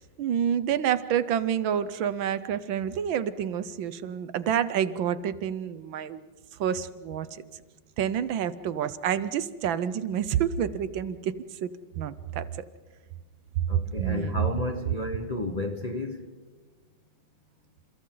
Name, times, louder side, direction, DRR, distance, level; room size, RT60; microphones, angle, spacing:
voice 1, 0.0-6.2 6.6-7.4 8.0-11.3 11.6-11.7 12.0-12.5 14.0-14.4, right 9 dB, 75° right, 1.6 m, -28 dB
voice 2, 13.7-16.3, left 1 dB, 25° left, 1.1 m, -32 dB
30.0 x 28.0 x 3.9 m
omnidirectional pair, 2.2 m